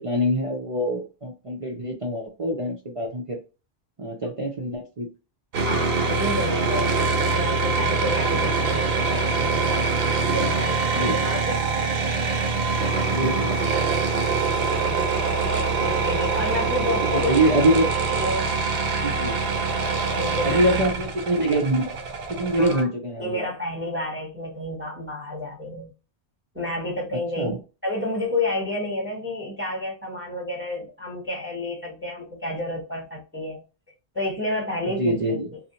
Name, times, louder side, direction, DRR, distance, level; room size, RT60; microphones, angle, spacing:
voice 1, 0.0-3.4 4.0-5.1 8.4-8.5 10.9-11.1 13.1-13.6 17.0-17.9 19.0-19.4 20.4-21.9 22.3-23.5 27.4-27.6 35.0-35.5, right 1 dB, 45° right, 0 dB, 0.4 m, -24 dB
sound 1, 5.5-22.8, right 4 dB, 65° right, 0.8 m, -24 dB
voice 2, 5.6-7.0 7.3-9.8 10.3-11.9 14.7-15.1 15.7-17.3 18.2-18.6 20.2-20.6 22.6-22.9 23.2-25.9 26.5-27.5 27.8-33.6 34.1-35.4, left 1 dB, 10° right, -2 dB, 0.8 m, -30 dB
2.6 x 2.0 x 2.8 m, 0.32 s
omnidirectional pair, 1.1 m